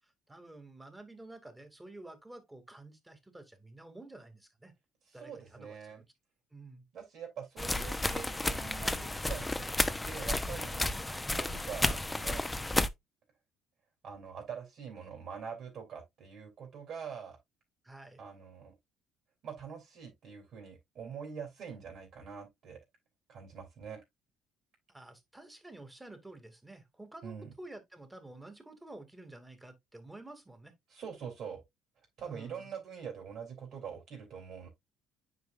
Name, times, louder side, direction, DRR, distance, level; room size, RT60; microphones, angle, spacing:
voice 1, 0.3-4.7 5.1-5.8 6.5-6.8 11.0-11.3 17.8-18.2 24.9-30.7 32.2-32.7, right 2 dB, 15° right, 2.6 m, -50 dB
voice 2, 5.1-6.0 6.9-9.7 10.0-10.8 11.3-12.4 14.0-17.4 18.2-18.7 19.4-22.8 23.3-24.0 27.2-27.5 30.9-31.6 32.2-34.7, right 7 dB, 55° right, 3.5 m, -44 dB
sound 1, 7.6-12.9, left 2 dB, 15° left, 0.8 m, -32 dB
9.3 x 4.9 x 2.6 m
hypercardioid pair, 60°, 0 cm